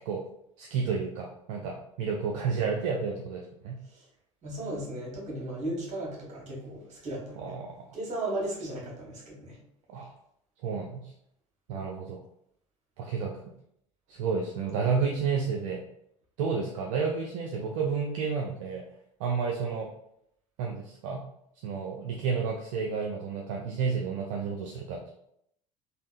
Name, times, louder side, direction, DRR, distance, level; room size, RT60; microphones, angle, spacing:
voice 1, 0.6-3.8 7.4-7.8 9.9-10.1 10.6-11.1 11.7-12.2 13.0-13.3 14.1-15.8 16.4-18.8 19.2-19.9 20.6-21.2 21.6-25.1, right 5 dB, 65° right, 0 dB, 0.4 m, -31 dB
voice 2, 4.4-7.6 7.9-9.6, right 1 dB, 40° right, -3 dB, 1.4 m, -36 dB
3.4 x 2.3 x 2.5 m, 0.74 s
figure-of-eight pair, 65°, 18 cm